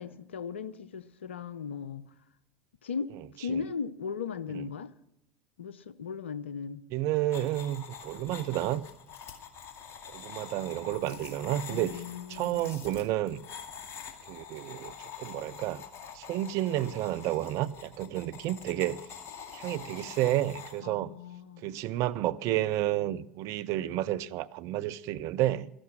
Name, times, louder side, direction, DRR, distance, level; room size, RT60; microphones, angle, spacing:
voice 1, 0.0-2.0 2.8-4.9 5.6-6.8 11.7-12.7 20.8-21.7, left 6 dB, 80° left, 0.7 m, -37 dB
voice 2, 6.9-8.8 10.1-12.0 12.3-13.4 14.3-15.8 16.1-19.0 19.5-21.1 21.6-25.7, right 14 dB, 50° right, 0.6 m, -31 dB
sound 1, 7.3-20.8, left 7 dB, 40° left, 2.1 m, -45 dB
13.0 x 11.5 x 6.0 m
figure-of-eight pair, 75°, 6 cm